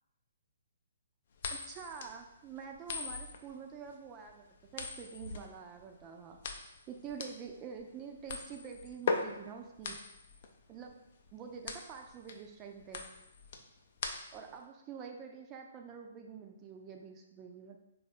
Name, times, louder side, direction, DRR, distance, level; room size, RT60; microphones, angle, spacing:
sound 1, 1.4-14.6, left 4 dB, 45° left, 0.4 m, -40 dB
voice 1, 1.5-10.0 10.7-11.0 11.3-13.1 14.3-17.8, right 6 dB, 25° right, 4 dB, 0.4 m, -47 dB
3.4 x 2.3 x 4.1 m, 0.88 s
figure-of-eight pair, 125°, 0 cm